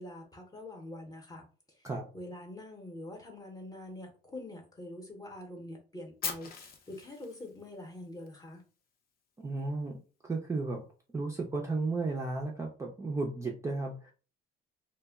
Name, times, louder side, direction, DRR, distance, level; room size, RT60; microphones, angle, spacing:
voice 1, 0.0-1.9 2.1-8.6, left 1 dB, 20° left, 2 dB, 0.7 m, -45 dB
Fire, 6.2-8.3, left 6 dB, 50° left, 0.6 m, -40 dB
voice 2, 9.4-10.8 11.1-14.1, right 3 dB, 15° right, 0 dB, 0.4 m, -34 dB
2.2 x 2.1 x 3.4 m, 0.35 s
cardioid pair, 135°, 19 cm